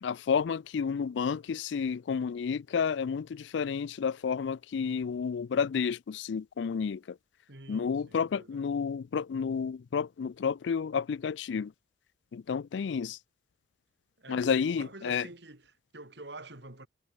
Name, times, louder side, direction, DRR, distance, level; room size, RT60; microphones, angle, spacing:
voice 1, 0.0-7.2 7.7-11.7 12.3-13.2 14.3-15.3, left 6 dB, 65° left, 0.4 m, -31 dB
voice 2, 7.5-8.7 14.2-16.9, right 2 dB, 60° right, 2.7 m, -48 dB
head